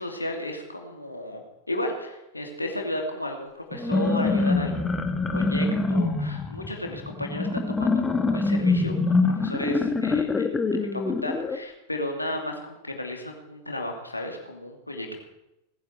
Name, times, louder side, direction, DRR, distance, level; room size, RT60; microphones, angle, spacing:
voice 1, 0.0-15.2, left 1 dB, 85° left, 2 dB, 2.6 m, -34 dB
sound 1, 3.7-11.6, left 3 dB, 10° left, 1.6 m, -25 dB
19.0 x 10.5 x 7.4 m, 0.93 s
figure-of-eight pair, 90°, 0 cm